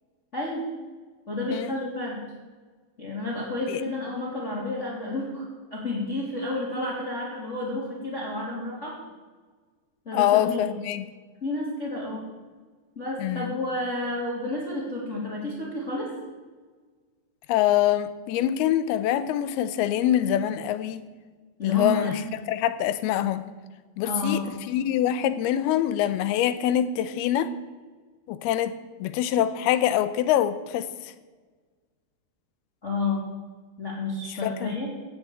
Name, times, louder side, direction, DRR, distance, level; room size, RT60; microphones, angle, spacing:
voice 1, 0.3-0.6 1.3-2.2 3.0-5.4 5.7-8.9 10.0-10.6 11.4-12.3 12.9-16.1 21.6-22.3 24.0-24.5 32.8-33.2 33.8-34.9, left 2 dB, 20° left, -6 dB, 2.9 m, -30 dB
voice 2, 10.1-11.0 13.2-13.5 17.5-21.0 21.6-22.2 22.5-23.4 24.0-24.4 24.7-27.5 28.3-28.7 29.0-30.9 34.4-34.7, left 11 dB, 80° left, 13 dB, 2.5 m, -24 dB
16.5 x 6.8 x 8.9 m, 1.4 s
omnidirectional pair, 4.8 m